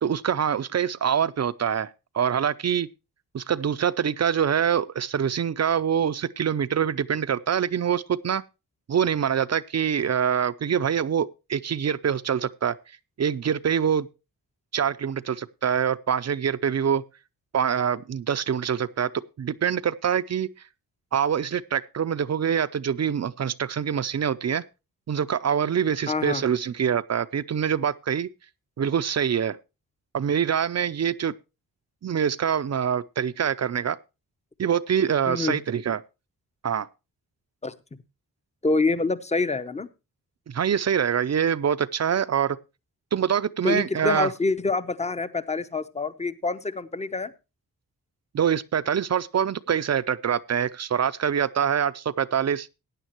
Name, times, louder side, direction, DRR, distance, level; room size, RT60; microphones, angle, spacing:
voice 1, 0.0-2.9 3.3-8.4 8.9-12.7 13.2-14.1 14.7-17.0 17.5-19.1 19.4-20.5 21.1-24.6 25.1-28.3 28.8-29.6 30.1-31.3 32.0-34.0 34.6-36.0 36.6-36.9 40.5-42.6 43.1-44.3 48.3-52.7, right 8 dB, 45° right, 0.5 m, -25 dB
voice 2, 26.1-26.4 35.3-35.6 37.6-37.7 38.6-39.9 43.6-47.3, left 3 dB, 20° left, 0.7 m, -26 dB
16.0 x 9.5 x 3.0 m
wide cardioid pair, 110°, 37 cm